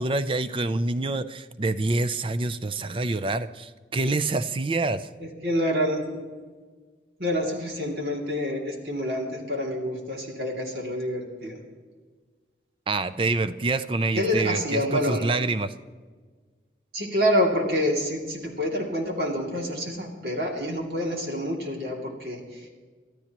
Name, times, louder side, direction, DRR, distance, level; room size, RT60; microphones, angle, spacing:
voice 1, 0.0-5.1 12.9-15.7, right 2 dB, 30° right, 13 dB, 0.5 m, -26 dB
voice 2, 5.2-6.0 7.2-11.6 14.1-15.3 16.9-22.7, equal, 60° right, 0 dB, 2.7 m, -27 dB
25.0 x 13.5 x 3.0 m, 1.4 s
head